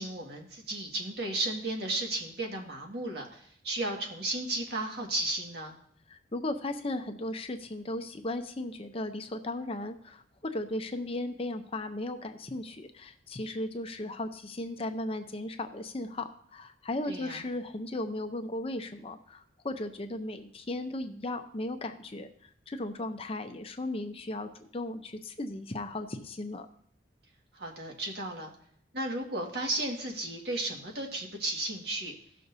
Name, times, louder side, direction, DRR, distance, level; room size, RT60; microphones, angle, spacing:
voice 1, 0.0-5.7 17.1-17.4 27.6-28.5 28.9-32.1, right 2 dB, 60° right, 1 dB, 1.8 m, -34 dB
voice 2, 6.1-26.7, left 1 dB, 30° left, 7 dB, 0.7 m, -36 dB
17.0 x 6.5 x 2.7 m, 0.62 s
head